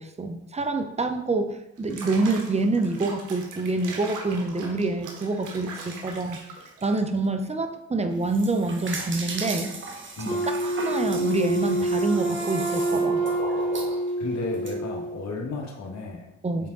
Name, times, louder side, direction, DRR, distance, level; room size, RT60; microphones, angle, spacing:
voice 1, 0.0-6.4 6.8-9.7 10.5-13.2 16.4-16.7, right 2 dB, 20° right, 7 dB, 0.7 m, -26 dB
Water / Bathtub (filling or washing), 1.8-7.3, right 4 dB, 80° right, 1.4 m, -41 dB
sound 1, 8.1-14.7, right 3 dB, 40° right, 1.1 m, -36 dB
Wind instrument woodwind instrument, 10.3-15.3, right 1 dB, 30° left, 2.5 m, -27 dB
voice 2, 14.2-16.3 16.6-16.7, left 3 dB, 60° left, 0 dB, 1.7 m, -34 dB
8.4 x 3.5 x 3.9 m, 0.86 s
cardioid pair, 90°, 30 cm